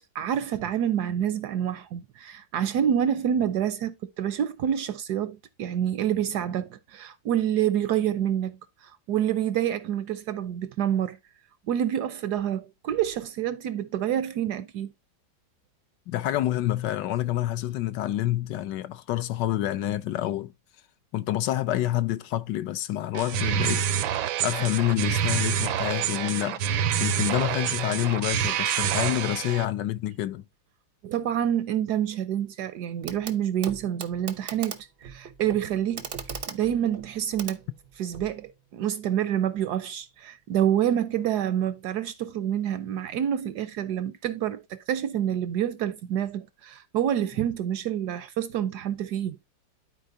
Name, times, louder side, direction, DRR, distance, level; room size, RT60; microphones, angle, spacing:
voice 1, 0.1-11.2 11.7-14.9 31.0-36.1 36.5-37.6 38.0-49.4, right 10 dB, 70° right, 1.0 m, -27 dB
voice 2, 16.1-20.5 21.1-23.9 24.4-26.7 27.0-30.4, left 14 dB, 70° left, 1.2 m, -27 dB
sound 1, 23.1-29.7, right 9 dB, 85° right, 1.5 m, -27 dB
Clock, 33.0-33.4 33.6-38.3 39.6-39.7, right 6 dB, 55° right, 0.6 m, -39 dB
12.5 x 4.3 x 2.6 m
omnidirectional pair, 2.1 m